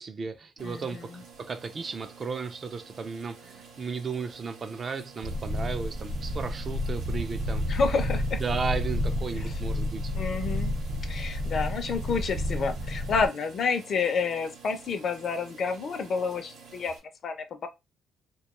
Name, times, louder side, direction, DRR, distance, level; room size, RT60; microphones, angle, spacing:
voice 1, 0.0-1.1 1.4-7.6 8.4-10.1, right 5 dB, 40° right, 0.3 m, -34 dB
voice 2, 0.6-1.2 7.7-8.4 9.4-9.5 10.1-10.7 11.1-16.9 17.2-17.4 17.6-17.7, left 5 dB, 55° left, 0.5 m, -29 dB
sound 1, 0.6-17.0, right 5 dB, 90° right, 0.7 m, -51 dB
sound 2, 5.2-13.3, left 1 dB, 60° right, 0.9 m, -30 dB
2.3 x 2.2 x 2.9 m
cardioid pair, 90°, 0 cm